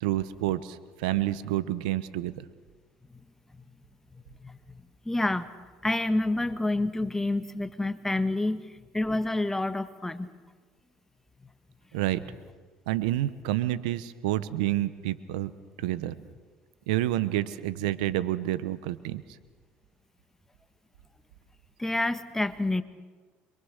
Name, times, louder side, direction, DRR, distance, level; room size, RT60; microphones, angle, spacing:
voice 1, 0.0-2.4 11.9-12.2 12.9-15.5 15.8-16.2 16.9-19.2, right 14 dB, 90° right, 15 dB, 1.0 m, -29 dB
voice 2, 4.4-4.8 5.0-5.5 5.8-8.7 8.9-10.3 21.8-22.8, left 2 dB, 10° left, 10 dB, 1.5 m, -28 dB
26.0 x 23.5 x 6.6 m, 1.4 s
supercardioid pair, 90°, 4 cm